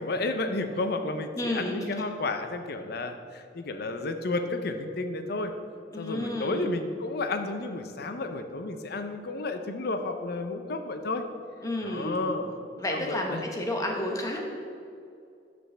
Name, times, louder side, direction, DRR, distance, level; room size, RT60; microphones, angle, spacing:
voice 1, 0.0-5.5 6.0-11.3 11.8-12.5 12.9-13.4, left 2 dB, 60° left, 7 dB, 0.6 m, -32 dB
voice 2, 1.3-1.9 5.9-6.7 11.6-12.2 12.8-14.4, left 1 dB, 20° left, 1 dB, 1.0 m, -31 dB
12.5 x 5.2 x 3.4 m, 2.5 s
head